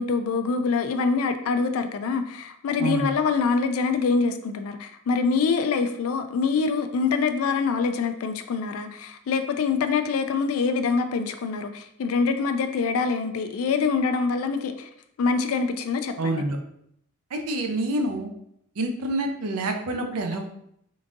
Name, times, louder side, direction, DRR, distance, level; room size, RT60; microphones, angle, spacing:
voice 1, 0.0-14.9 15.2-16.4, left 4 dB, 70° left, 8 dB, 0.3 m, -25 dB
voice 2, 16.2-16.6 17.3-18.3 18.8-20.4, right 2 dB, 80° right, 4 dB, 0.6 m, -27 dB
3.9 x 3.5 x 2.5 m, 0.73 s
head